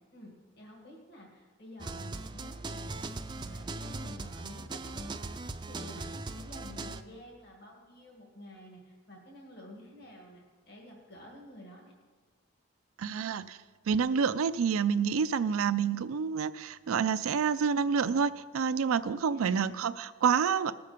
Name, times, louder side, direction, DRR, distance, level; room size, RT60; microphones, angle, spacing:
voice 1, 0.1-5.4 5.7-11.9 19.2-19.7, left 1 dB, 50° left, -1 dB, 2.0 m, -50 dB
sound 1, 1.8-7.0, right 3 dB, 20° right, 0.4 m, -39 dB
voice 2, 13.0-13.6 13.9-20.7, right 6 dB, 90° right, 12 dB, 0.4 m, -28 dB
19.0 x 7.0 x 5.1 m, 1.4 s
head